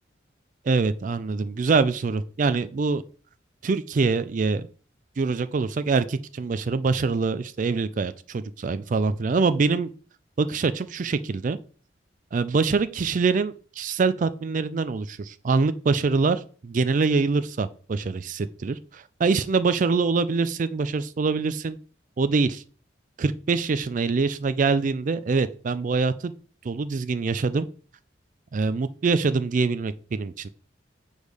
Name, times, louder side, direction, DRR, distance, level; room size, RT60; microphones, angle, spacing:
voice 1, 0.6-3.0 3.6-4.7 5.2-9.9 10.4-11.6 12.3-21.8 22.2-22.6 23.2-26.3 26.6-27.7 28.5-30.5, right 4 dB, 40° right, 14 dB, 0.4 m, -24 dB
6.3 x 3.4 x 4.9 m, 0.41 s
head